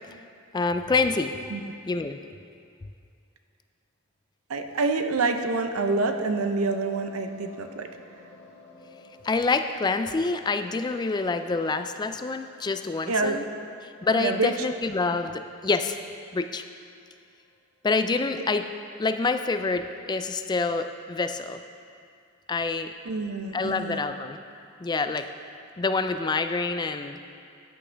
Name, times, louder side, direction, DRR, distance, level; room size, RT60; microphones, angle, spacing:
voice 1, 0.5-1.4 1.9-2.2 9.2-13.4 13.8-16.0 16.3-16.6 17.8-18.7 19.0-21.6 22.5-22.9 23.5-24.4 24.8-25.3 25.8-27.2, left 3 dB, 20° left, 8 dB, 0.3 m, -27 dB
voice 2, 4.5-7.9 13.1-13.4 14.2-14.5 23.0-24.0, right 3 dB, 85° right, 7 dB, 0.7 m, -27 dB
sound 1, 5.8-18.0 18.2-18.3 18.6-18.7 18.9-19.0, left 4 dB, 55° left, 1.0 m, -51 dB
13.5 x 8.6 x 3.4 m, 2.4 s
head